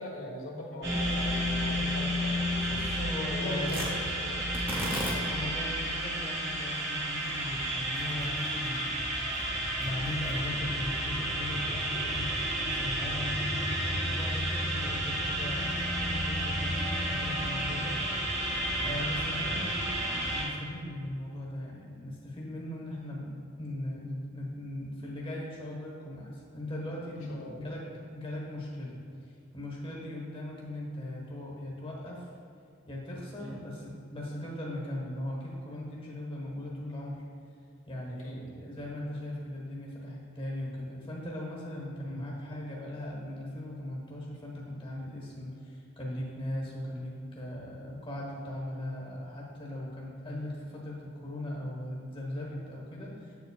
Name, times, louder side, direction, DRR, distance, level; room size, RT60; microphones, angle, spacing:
voice 1, 0.0-2.8 3.3-4.5 18.7-19.0 27.3-27.6 33.4-33.6 38.1-38.4 42.1-42.2, left 1 dB, 85° left, -3 dB, 1.2 m, -41 dB
sound 1, 0.8-20.5, equal, 60° right, 1.6 m, -31 dB
voice 2, 2.6-3.7 5.3-9.2 9.8-18.0 18.8-29.0 29.5-32.3 32.9-37.3 37.9-53.3, left 1 dB, 25° left, -3 dB, 1.1 m, -38 dB
Tearing, 3.6-12.0, equal, 10° right, 1.1 m, -41 dB
7.6 x 7.1 x 2.2 m, 2.5 s
head